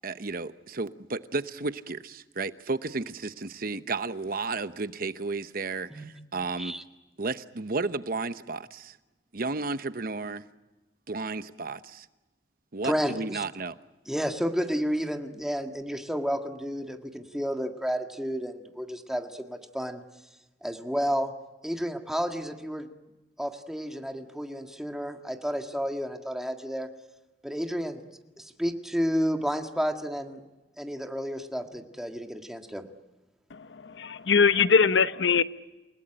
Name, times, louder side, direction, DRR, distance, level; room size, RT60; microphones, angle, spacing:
voice 1, 0.0-6.7 7.2-9.0 9.3-10.5 11.1-12.1 12.7-13.8, right 3 dB, 55° right, 0.9 m, -33 dB
voice 2, 12.8-13.4 14.1-20.0 20.6-21.3 21.6-22.9 23.4-26.9 27.4-28.0 28.4-30.4 30.8-32.9, equal, 5° right, 1.8 m, -31 dB
voice 3, 34.0-35.4, left 5 dB, 90° left, 0.8 m, -21 dB
29.0 x 18.0 x 10.0 m
head